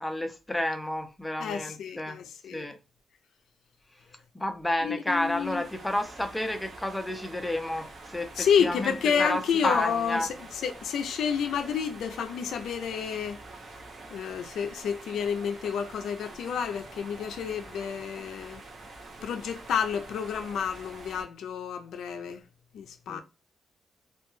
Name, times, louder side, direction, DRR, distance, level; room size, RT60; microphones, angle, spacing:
voice 1, 0.0-2.2 2.5-2.8 4.3-8.9 9.2-10.3 23.1-23.2, left 1 dB, 10° left, 0.4 m, -31 dB
voice 2, 1.4-2.7 4.8-5.6 8.4-10.3 10.6-13.4 14.1-18.6 19.2-22.4 22.7-23.2, left 7 dB, 85° left, 0.3 m, -29 dB
sound 1, 5.1-21.2, right 2 dB, 45° right, 0.6 m, -46 dB
2.3 x 2.1 x 3.0 m
cardioid pair, 130°, 0 cm